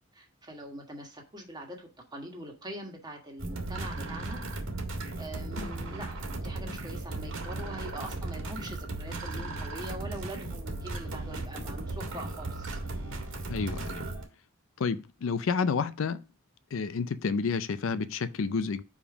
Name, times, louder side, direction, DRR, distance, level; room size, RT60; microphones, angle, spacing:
voice 1, 0.1-4.4 5.2-12.8, right 1 dB, 20° right, 1.6 m, -43 dB
sound 1, 3.4-14.2, right 2 dB, 65° right, 1.8 m, -36 dB
voice 2, 13.5-14.0 14.8-16.2 16.7-18.8, left 5 dB, 65° left, 0.4 m, -30 dB
5.2 x 5.0 x 4.9 m
head